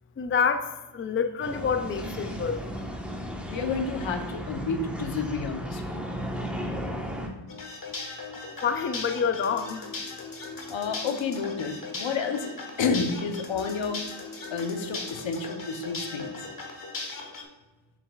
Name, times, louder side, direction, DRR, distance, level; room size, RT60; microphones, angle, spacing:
voice 1, 0.2-2.7 8.6-9.9, left 6 dB, 30° left, 8 dB, 0.4 m, -27 dB
sound 1, 1.4-7.3, equal, ahead, 1.1 m, -35 dB
voice 2, 3.5-6.1 10.7-12.5 12.8-14.0 14.5-16.3, left 5 dB, 80° left, 7 dB, 0.9 m, -30 dB
sound 2, 7.5-17.4, left 3 dB, 45° left, 1.4 m, -38 dB
7.3 x 6.7 x 2.4 m, 1.2 s
wide cardioid pair, 95°, 46 cm